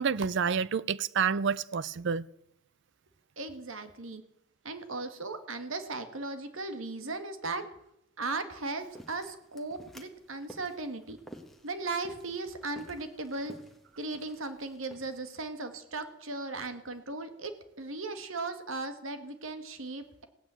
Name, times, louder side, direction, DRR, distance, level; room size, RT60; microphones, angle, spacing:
voice 1, 0.0-2.3, right 6 dB, 60° right, 0.5 m, -29 dB
voice 2, 3.4-4.2 4.6-7.7 8.2-11.2 11.6-13.5 14.0-17.5 17.8-20.2, right 3 dB, 75° right, 1.8 m, -37 dB
sound 1, 8.6-15.2, equal, ahead, 1.6 m, -53 dB
16.5 x 9.0 x 8.9 m
head